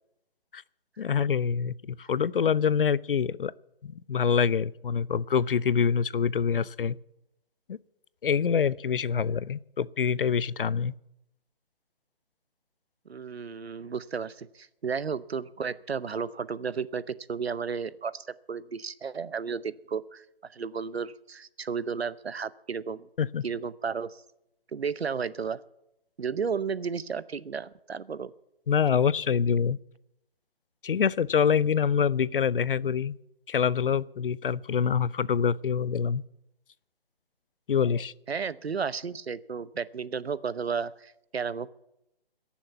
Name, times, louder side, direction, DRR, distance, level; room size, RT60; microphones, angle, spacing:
voice 1, 1.0-3.5 3.8-7.0 7.7-7.8 8.2-10.9 23.2-23.4 28.7-29.8 30.8-33.1 33.5-36.2 37.7-38.1, left 7 dB, 60° left, 21 dB, 0.5 m, -25 dB
voice 2, 13.1-23.1 23.4-24.2 24.7-25.6 26.2-28.3 38.3-41.7, right 6 dB, 90° right, 17 dB, 0.8 m, -33 dB
21.5 x 7.2 x 8.2 m, 0.83 s
figure-of-eight pair, 160°, 30 cm